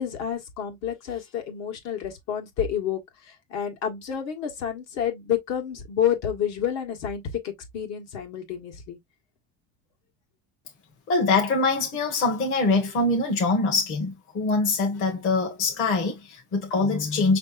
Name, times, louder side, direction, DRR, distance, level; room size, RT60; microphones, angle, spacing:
voice 1, 0.0-3.0 3.3-9.0, left 9 dB, 60° left, 1.8 m, -29 dB
voice 2, 11.1-17.4, left 3 dB, 45° left, 1.4 m, -24 dB
5.9 x 3.4 x 2.6 m
cardioid pair, 160°, 30 cm